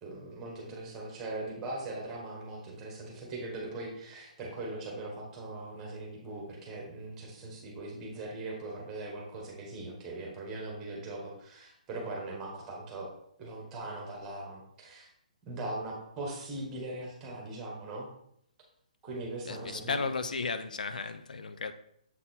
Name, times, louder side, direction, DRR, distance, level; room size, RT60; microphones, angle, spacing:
voice 1, 0.0-13.1 13.4-15.1 15.4-18.1 19.0-20.0, right 2 dB, 10° right, 1.2 m, -40 dB
voice 2, 19.5-21.7, left 4 dB, 90° left, 0.6 m, -34 dB
7.3 x 4.2 x 4.1 m
hypercardioid pair, 180°, 4 cm